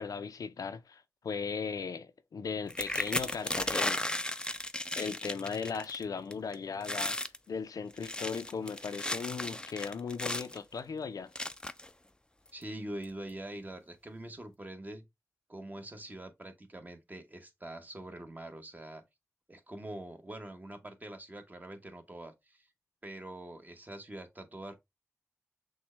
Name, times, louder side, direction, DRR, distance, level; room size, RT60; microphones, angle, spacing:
voice 1, 0.0-4.0 5.0-7.2 7.5-11.3, left 5 dB, 85° left, 0.4 m, -37 dB
sound 1, 2.7-6.0 6.3-6.6 6.8-7.4 7.9-10.6 11.4-11.9 12.6-12.7 13.0-13.3, left 1 dB, 15° left, 0.4 m, -35 dB
voice 2, 12.5-15.0 15.5-19.0 19.5-22.7 23.0-24.7, right 1 dB, 30° right, 1.0 m, -44 dB
6.1 x 2.1 x 3.2 m
wide cardioid pair, 70°, 6 cm